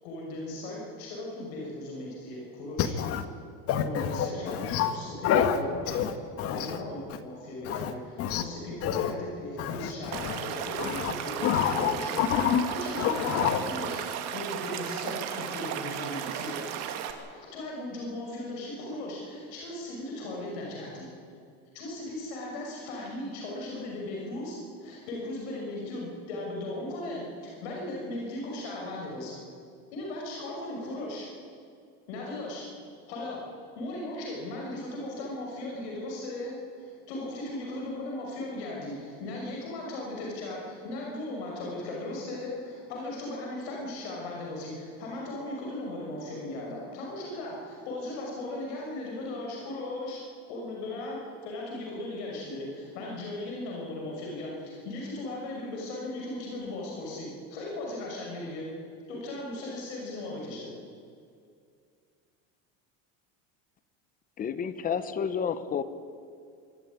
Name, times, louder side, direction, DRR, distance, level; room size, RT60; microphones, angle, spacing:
voice 1, 0.0-2.9 3.8-6.0 6.5-12.2 12.7-16.6 17.3-21.1 21.7-29.4 29.9-31.3 32.1-32.7 33.1-33.4 33.8-50.2 50.5-58.7 59.1-60.7, left 1 dB, 90° left, -2 dB, 6.4 m, -37 dB
voice 2, 2.8-3.2 3.7-4.9 5.2-5.6 5.9-6.8 7.6-7.9 8.2-8.4 8.8-9.1 9.6-10.4 10.8-11.1 11.4-12.6 13.0-13.6, left 9 dB, 45° left, 9 dB, 1.6 m, -28 dB
Stream / Liquid, 10.1-17.1, right 9 dB, 55° right, 2.4 m, -35 dB
voice 3, 64.4-65.8, left 7 dB, 25° left, 13 dB, 1.0 m, -30 dB
24.5 x 14.0 x 9.8 m, 2.3 s
cardioid pair, 155°, 32 cm